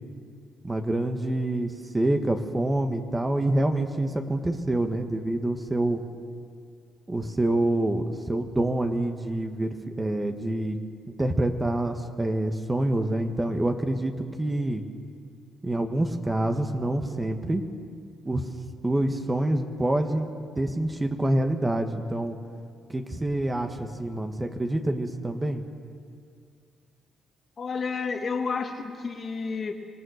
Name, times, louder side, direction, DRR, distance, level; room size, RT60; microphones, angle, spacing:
voice 1, 0.6-6.0 7.1-10.8 11.2-14.8 15.6-17.6 18.3-18.5 18.8-20.3 20.6-22.4 22.9-25.6, right 1 dB, 15° right, 5 dB, 1.6 m, -26 dB
voice 2, 27.6-29.7, left 5 dB, 45° left, 4 dB, 2.0 m, -30 dB
26.0 x 18.0 x 6.6 m, 2.2 s
cardioid pair, 90°, 0 cm